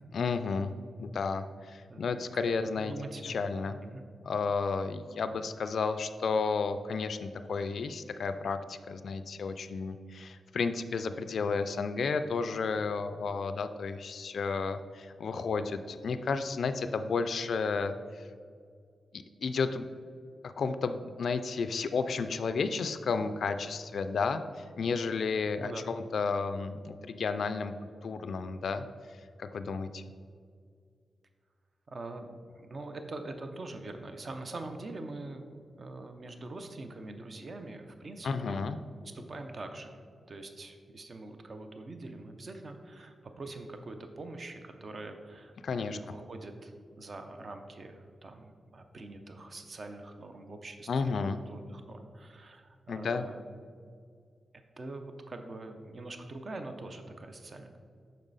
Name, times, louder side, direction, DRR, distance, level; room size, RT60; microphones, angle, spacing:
voice 1, 0.1-0.7 1.0-2.9 3.2-3.8 4.3-17.9 19.1-19.9 20.4-27.7 28.0-28.8 29.4-30.0 38.2-38.8 45.6-46.0 50.9-51.4 52.9-53.3, left 4 dB, 65° left, 10 dB, 0.3 m, -32 dB
voice 2, 2.3-3.4 3.8-4.0 5.1-5.2 25.6-25.8 31.9-38.7 39.0-51.2 51.5-53.8 54.8-57.8, right 2 dB, 40° right, 6 dB, 0.6 m, -44 dB
7.3 x 5.4 x 4.0 m, 2.2 s
wide cardioid pair, 130°, 0 cm